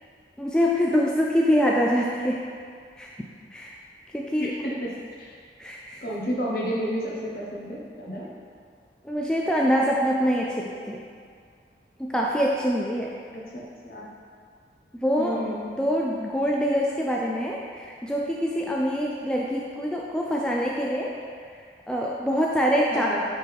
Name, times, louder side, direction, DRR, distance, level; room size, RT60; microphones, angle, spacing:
voice 1, 0.4-2.4 3.0-3.1 3.5-3.8 4.1-4.5 5.6-6.0 9.0-11.0 12.0-13.1 14.9-15.4 15.8-21.1 21.9-23.1, equal, 5° left, -3 dB, 0.3 m, -25 dB
voice 2, 4.4-4.9 5.2-5.4 6.0-8.2 13.3-14.1 15.2-15.7 22.9-23.2, equal, 55° left, -4 dB, 1.2 m, -31 dB
9.4 x 3.8 x 3.5 m, 2.1 s
head